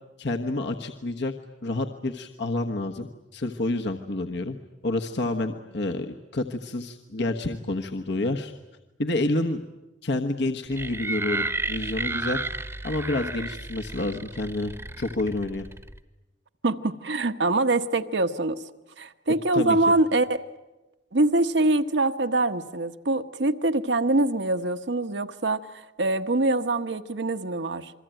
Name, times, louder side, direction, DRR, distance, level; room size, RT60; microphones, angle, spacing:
voice 1, 0.2-1.3 1.6-4.6 4.8-8.5 9.0-9.6 10.0-12.4 12.8-15.7 19.5-19.8, left 2 dB, 65° left, 4 dB, 1.3 m, -29 dB
sound 1, 10.7-16.0, right 2 dB, 15° right, 1.0 m, -32 dB
voice 2, 16.6-18.6 19.0-20.4 21.1-27.9, right 2 dB, 70° right, 8 dB, 1.2 m, -24 dB
28.0 x 22.5 x 9.1 m, 1.0 s
head